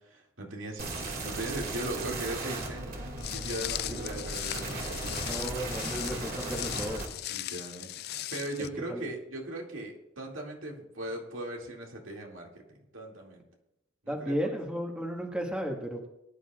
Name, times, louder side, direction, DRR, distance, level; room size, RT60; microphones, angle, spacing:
voice 1, 0.0-3.0 3.3-5.8 7.3-13.4 14.0-14.5, right 1 dB, 80° right, 0 dB, 2.4 m, -39 dB
sound 1, 0.8-7.0, right 2 dB, 50° right, 2.3 m, -36 dB
Walk footsteps, 3.2-8.7, left 15 dB, 55° left, 0.3 m, -38 dB
voice 2, 5.3-7.0 8.9-9.0 14.1-16.1, equal, 5° right, 1 dB, 1.6 m, -34 dB
21.0 x 10.5 x 2.4 m, 0.85 s
head